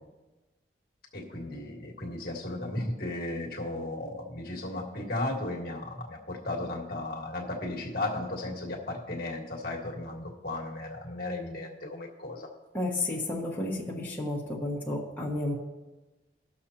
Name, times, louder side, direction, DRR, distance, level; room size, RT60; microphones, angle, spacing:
voice 1, 1.1-12.5, left 2 dB, 55° left, -1 dB, 1.7 m, -35 dB
voice 2, 12.7-15.5, left 2 dB, 10° left, -5 dB, 1.6 m, -32 dB
19.5 x 6.5 x 2.9 m, 1.1 s
head